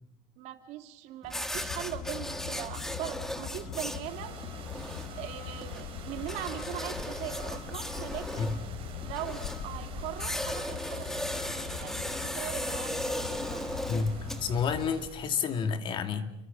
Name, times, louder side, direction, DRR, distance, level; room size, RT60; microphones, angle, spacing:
voice 1, 0.4-4.4 5.2-8.5 8.9-11.1 11.7-13.7, right 13 dB, 60° right, 7 dB, 2.6 m, -40 dB
sound 1, 1.2-15.1, left 1 dB, 5° left, 1.6 m, -37 dB
Truck, 1.5-14.9, left 14 dB, 70° left, 1.0 m, -42 dB
sound 2, 4.0-15.7, right 8 dB, 45° right, 3.7 m, -47 dB
voice 2, 13.9-16.3, left 5 dB, 40° left, 8 dB, 2.3 m, -30 dB
29.5 x 23.0 x 6.9 m, 0.85 s
cardioid pair, 150°, 13 cm